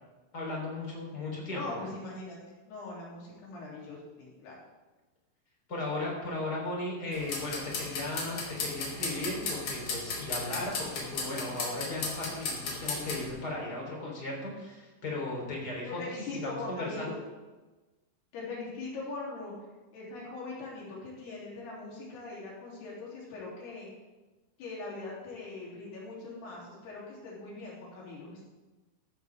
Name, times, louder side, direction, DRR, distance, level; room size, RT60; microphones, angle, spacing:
voice 1, 0.3-1.9 5.7-16.0 16.4-17.1, left 2 dB, 25° left, -2 dB, 3.9 m, -36 dB
voice 2, 1.5-2.4 2.7-4.6 15.8-17.2 18.3-19.5 19.9-23.9 24.6-28.4, left 3 dB, 80° left, -4 dB, 5.3 m, -41 dB
sound 1, 7.1-13.3, left 3 dB, 55° left, 3.8 m, -36 dB
15.0 x 13.0 x 3.6 m, 1.2 s
omnidirectional pair, 4.6 m